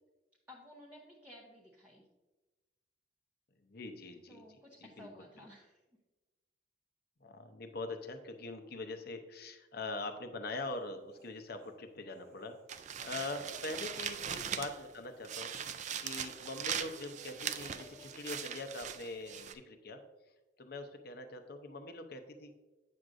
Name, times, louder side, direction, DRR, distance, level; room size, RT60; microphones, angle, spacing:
voice 1, 0.5-2.1 4.3-5.8 13.5-13.8, equal, 10° right, -3 dB, 0.7 m, -55 dB
voice 2, 3.6-4.4 4.8-5.1 5.4-5.5 7.2-15.5 16.0-20.0 20.6-22.5, left 2 dB, 55° left, 7 dB, 0.7 m, -43 dB
Human voice, 10.6-11.8 12.1-15.3 15.6-15.8 16.1-18.6, left 1 dB, 55° right, 1.0 m, -60 dB
sound 1, 12.7-14.9 15.2-19.5, right 8 dB, 40° right, 0.3 m, -40 dB
8.5 x 6.2 x 2.6 m, 1.1 s
head